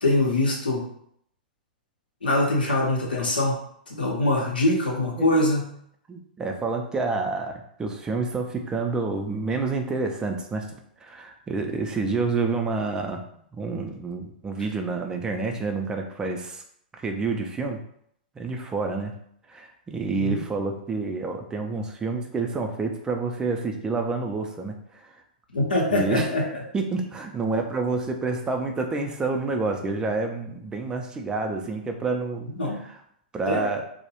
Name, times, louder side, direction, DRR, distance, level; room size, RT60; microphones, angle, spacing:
voice 1, 0.0-0.8 2.2-3.6 3.9-5.7 20.2-20.4 25.5-26.5 32.5-32.8 33.5-33.7, left 1 dB, 85° left, -2 dB, 0.7 m, -23 dB
voice 2, 6.1-13.2 13.5-16.6 16.9-17.8 18.4-19.1 19.5-25.2 25.9-26.3 26.7-32.5 32.8-33.0 33.3-33.8, right 3 dB, 15° right, 3 dB, 0.4 m, -28 dB
2.2 x 2.0 x 2.9 m, 0.68 s
figure-of-eight pair, 105°, 5 cm